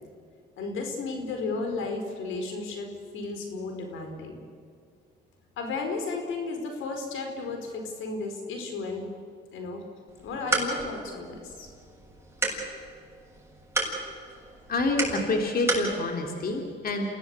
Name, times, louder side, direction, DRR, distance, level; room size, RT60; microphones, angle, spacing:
voice 1, 0.6-2.9 3.1-4.4 5.6-9.1 9.5-9.9 10.2-11.7, left 3 dB, 85° left, 4 dB, 4.7 m, -33 dB
sound 1, 10.1-15.9, right 2 dB, 10° right, 7.7 m, -33 dB
voice 2, 14.7-17.1, left 2 dB, 50° left, 2 dB, 3.4 m, -27 dB
28.0 x 17.5 x 8.4 m, 2.2 s
cardioid pair, 90°, 20 cm